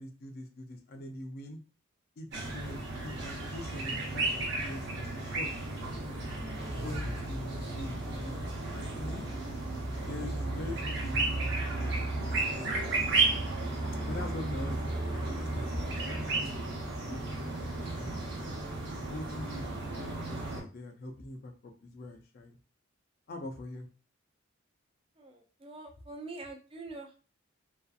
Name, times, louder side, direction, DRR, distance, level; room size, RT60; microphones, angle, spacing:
voice 1, 0.0-1.6 2.2-5.5 6.7-8.5 8.7-9.3 10.0-12.8 14.0-14.8 15.1-18.3 19.1-22.6 23.3-23.9, left 1 dB, 50° left, 3 dB, 0.4 m, -43 dB
sound 1, 2.3-20.6, right 2 dB, 55° right, 0.7 m, -33 dB
sound 2, 17.0-20.1, right 1 dB, 85° right, 1.1 m, -55 dB
voice 2, 25.2-27.2, right 3 dB, 25° right, 3 dB, 0.4 m, -45 dB
2.5 x 2.4 x 2.3 m, 0.36 s
head